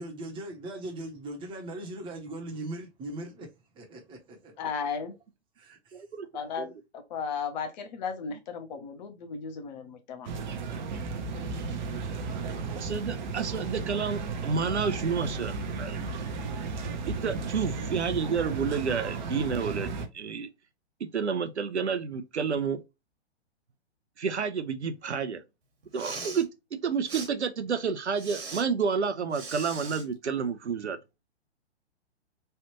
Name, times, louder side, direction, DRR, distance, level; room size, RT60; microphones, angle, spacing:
voice 1, 0.0-3.5 3.7-4.5 5.6-6.0, right 1 dB, 15° right, 0.8 m, -39 dB
voice 2, 4.6-5.1 6.3-6.7 7.1-10.3, left 6 dB, 40° left, 0.8 m, -35 dB
voice 3, 5.9-6.3 6.6-6.7 12.7-16.0 17.1-19.9 20.1-20.5 21.0-22.8 24.2-25.4 25.9-26.5 26.8-31.0, right 6 dB, 85° right, 0.6 m, -30 dB
sound 1, 10.2-20.1, right 4 dB, 45° right, 0.6 m, -34 dB
Respiratory sounds, 25.8-26.4 27.1-27.3 28.2-28.6 29.3-30.0, right 4 dB, 65° right, 1.4 m, -39 dB
3.3 x 2.4 x 2.9 m
figure-of-eight pair, 115°, 33 cm